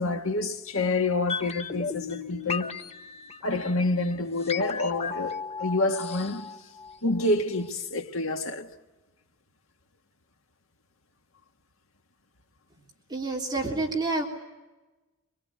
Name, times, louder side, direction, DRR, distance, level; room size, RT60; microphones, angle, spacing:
voice 1, 0.0-2.7 3.4-6.6 7.0-8.7, left 2 dB, 75° left, 1.7 m, -28 dB
sound 1, 1.3-7.3 7.6-7.7, left 5 dB, 30° left, 1.1 m, -36 dB
voice 2, 13.1-14.2, right 3 dB, 20° right, 3.4 m, -28 dB
25.0 x 23.5 x 9.6 m
head